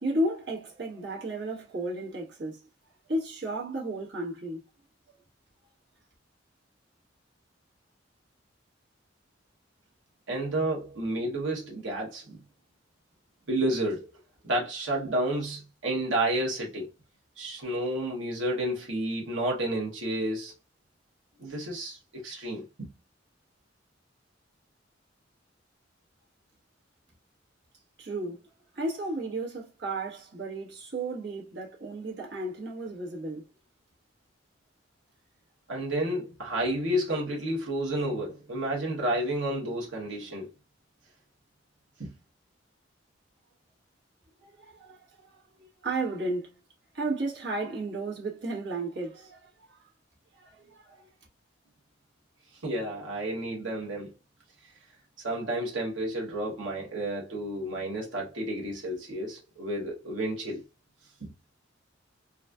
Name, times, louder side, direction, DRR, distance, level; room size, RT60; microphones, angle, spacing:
voice 1, 0.0-2.7 3.1-4.6 28.0-28.4 28.7-33.5 44.4-45.0 45.3-46.5 46.9-49.8 50.4-51.1, right 2 dB, 65° right, 1.3 m, -33 dB
voice 2, 10.3-12.4 13.5-14.1 14.4-16.9 17.4-20.5 21.4-22.9 35.7-40.5 42.0-42.1 52.6-54.1 55.2-60.6 61.2-61.3, right 1 dB, 80° right, 1.0 m, -31 dB
3.8 x 2.4 x 2.3 m
head